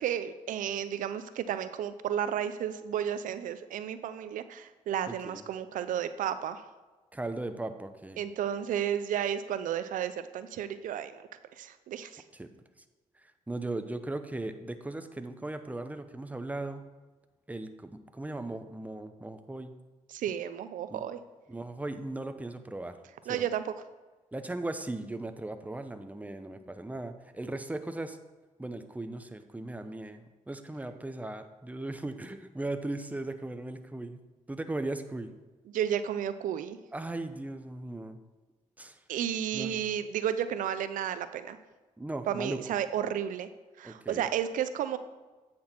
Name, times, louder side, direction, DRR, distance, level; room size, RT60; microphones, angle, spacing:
voice 1, 0.0-6.6 8.2-11.2 11.6-12.2 20.1-21.2 23.3-23.6 35.7-36.8 39.1-41.6 42.3-43.5 43.8-45.0, right 9 dB, 85° right, 12 dB, 0.4 m, -32 dB
voice 2, 5.1-5.4 7.1-8.2 12.3-12.5 13.2-16.9 17.5-19.7 20.9-21.0 21.5-23.0 23.2-23.4 24.3-28.2 28.6-34.2 34.5-35.3 36.9-38.2 38.8-39.0 39.5-39.8 42.0-42.6 43.8-44.3, right 2 dB, 10° right, 8 dB, 0.7 m, -38 dB
8.5 x 6.0 x 4.3 m, 1.2 s
cardioid pair, 60°, 13 cm